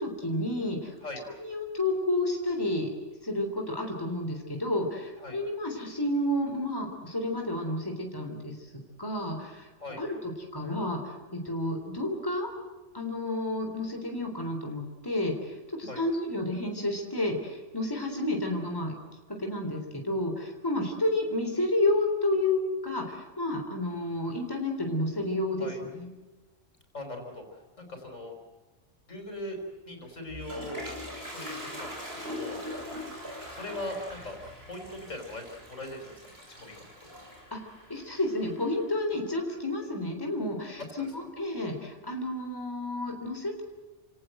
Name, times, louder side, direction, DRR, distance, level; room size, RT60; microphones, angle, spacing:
voice 1, 0.0-0.9 1.4-2.9 3.2-8.6 9.0-9.7 10.0-12.5 12.9-19.0 19.3-26.1 37.5-43.6, left 1 dB, 15° left, 3 dB, 3.7 m, -31 dB
voice 2, 26.9-27.4 27.8-28.3 29.1-29.6 29.9-30.8 31.3-32.6 33.5-34.4 34.7-35.4 35.7-36.3 36.6-36.8 41.0-41.1, left 1 dB, 75° left, 3 dB, 5.3 m, -40 dB
Toilet flush, 30.0-38.9, left 1 dB, 50° right, 6.9 m, -42 dB
29.5 x 18.0 x 7.9 m, 1.3 s
omnidirectional pair, 1.3 m